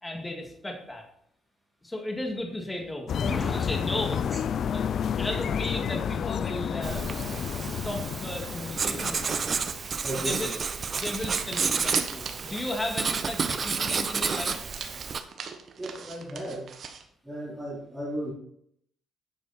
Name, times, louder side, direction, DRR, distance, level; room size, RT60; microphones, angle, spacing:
voice 1, 0.0-1.0 1.8-4.3 4.7-4.9 5.1-7.0 7.5-9.5 10.2-10.6 10.9-14.6, left 1 dB, 15° left, 2 dB, 2.0 m, -35 dB
sound 1, 3.1-9.9, left 8 dB, 60° left, 0.4 m, -30 dB
Writing, 6.8-15.2, right 5 dB, 45° right, 0.8 m, -30 dB
voice 2, 10.0-10.5 15.8-16.7 17.2-18.3, right 1 dB, 10° right, -8 dB, 3.8 m, -35 dB
sound 2, 11.0-12.7 13.0-13.1 13.4-13.5 13.9-17.0, right 6 dB, 60° right, 1.3 m, -40 dB
9.6 x 6.7 x 4.3 m, 0.71 s
cardioid pair, 90°, 0 cm